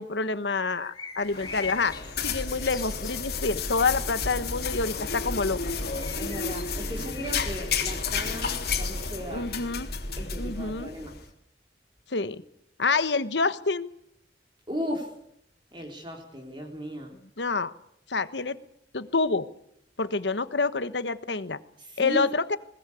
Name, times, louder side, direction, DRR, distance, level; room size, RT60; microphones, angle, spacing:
voice 1, 0.0-2.0 2.2-5.6 9.3-9.9 10.4-10.9 12.1-12.4 12.8-13.9 17.4-17.7 18.1-18.6 18.9-19.5 20.0-21.6 22.0-22.6, left 4 dB, 85° left, 13 dB, 1.3 m, -27 dB
sound 1, 0.7-3.3 5.7-7.6, left 5 dB, 25° left, 2.7 m, -43 dB
sound 2, 1.2-11.2, left 4 dB, 60° left, 3.4 m, -32 dB
voice 2, 6.2-9.5 10.2-11.2 14.7-15.1 15.7-17.1 21.8-22.3, equal, 25° right, 1 dB, 3.7 m, -36 dB
21.5 x 20.0 x 8.5 m, 0.73 s
head